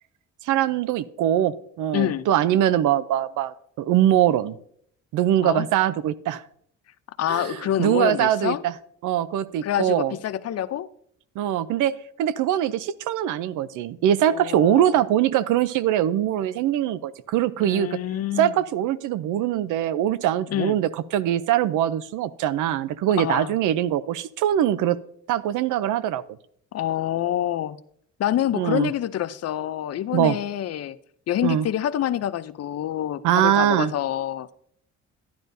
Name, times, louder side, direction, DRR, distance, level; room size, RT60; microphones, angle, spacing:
voice 1, 0.5-4.6 5.1-6.4 7.3-8.7 9.0-10.1 11.4-11.9 12.2-18.0 18.4-25.0 25.3-26.2 28.5-28.9 30.1-30.4 31.4-31.7 33.2-33.9, right 11 dB, 85° right, 0.5 m, -22 dB
voice 2, 1.9-2.3 5.4-5.7 7.2-8.6 9.6-10.9 14.3-15.0 17.6-18.5 20.5-20.8 23.2-23.6 26.7-27.8 28.2-31.0 31.3-34.5, left 11 dB, 55° left, 0.5 m, -26 dB
11.0 x 10.5 x 2.6 m
cardioid pair, 90°, 30 cm